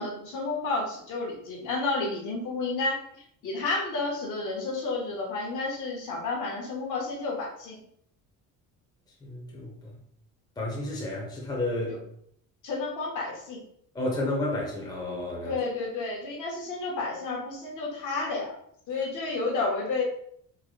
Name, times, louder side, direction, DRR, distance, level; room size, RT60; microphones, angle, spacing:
voice 1, 0.0-3.0 3.4-7.8 11.9-12.0 12.6-13.6 15.4-18.5 18.9-20.0, left 3 dB, 55° left, -1 dB, 1.1 m, -31 dB
voice 2, 9.2-9.7 10.6-12.0 13.9-15.5, left 1 dB, 10° left, -3 dB, 0.7 m, -31 dB
3.8 x 2.1 x 3.1 m, 0.68 s
cardioid pair, 155°, 36 cm